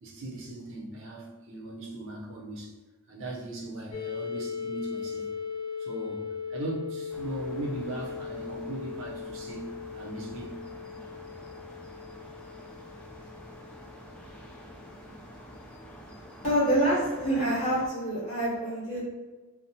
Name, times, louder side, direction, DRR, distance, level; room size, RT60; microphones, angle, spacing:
voice 1, 0.0-2.8 3.1-5.3 5.8-10.6, right 2 dB, 60° right, -3 dB, 0.6 m, -39 dB
sound 1, 3.9-15.6, left 6 dB, 75° left, 0.8 m, -39 dB
sound 2, 7.1-17.9, equal, 5° left, 0.4 m, -48 dB
voice 2, 16.4-19.0, right 1 dB, 35° left, -10 dB, 1.2 m, -26 dB
2.8 x 2.1 x 2.7 m, 1.2 s
head